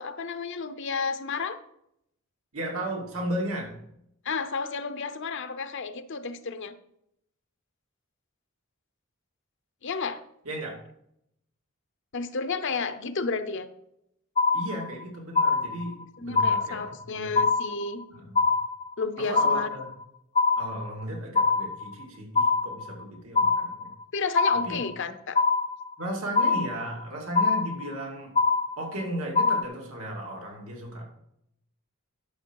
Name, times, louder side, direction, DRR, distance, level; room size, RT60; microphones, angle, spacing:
voice 1, 0.0-1.6 4.2-6.7 9.8-10.2 12.1-13.7 16.2-18.0 19.0-19.7 24.1-25.4, left 4 dB, 60° left, 10 dB, 0.7 m, -32 dB
voice 2, 2.5-3.8 10.4-10.8 14.5-16.8 17.2-17.4 18.1-18.3 19.2-19.9 20.6-23.9 24.6-24.8 26.0-28.3 28.8-31.1, right 1 dB, 80° right, -1 dB, 2.7 m, -35 dB
sound 1, 14.4-15.0 15.4-16.0 16.4-17.0 17.4-18.0 18.4-19.0 19.4-20.0 20.4-21.0 21.4-22.0 22.4-23.0 23.4-24.0 24.4-25.0 25.4-26.0 26.4-27.0 27.4-28.0 28.4-29.0 29.4-29.6, left 4 dB, 30° left, 0.5 m, -24 dB
11.5 x 6.8 x 4.7 m, 0.76 s
head